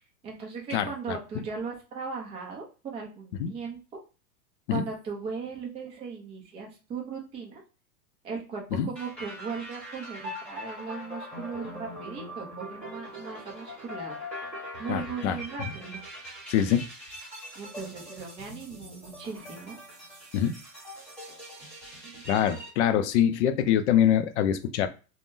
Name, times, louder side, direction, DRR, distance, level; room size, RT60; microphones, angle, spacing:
voice 1, 0.2-3.8 4.7-7.6 8.2-14.2 14.8-16.0 17.6-19.8, right 5 dB, 15° right, 0.4 m, -38 dB
sound 1, 9.0-22.7, equal, 5° left, 1.3 m, -42 dB
voice 2, 14.9-15.4 16.5-16.9 20.3-20.6 22.3-24.9, left 10 dB, 50° left, 0.4 m, -24 dB
3.5 x 2.1 x 2.6 m
hypercardioid pair, 140°, 48 cm